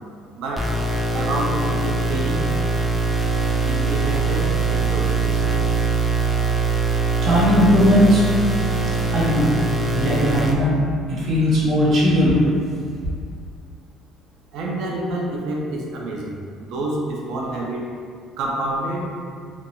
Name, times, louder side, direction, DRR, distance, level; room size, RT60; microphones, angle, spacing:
voice 1, 0.4-0.7 1.1-2.5 3.6-5.4 14.5-17.9 18.4-19.1, right 1 dB, 70° right, -1 dB, 0.4 m, -28 dB
sound 1, 0.6-10.5, right 3 dB, 5° right, 0.3 m, -22 dB
voice 2, 7.2-8.2 9.1-9.5 9.9-10.8 11.1-12.5, equal, 55° right, -6 dB, 0.9 m, -17 dB
2.5 x 2.2 x 3.0 m, 2.1 s
cardioid pair, 105°, 0 cm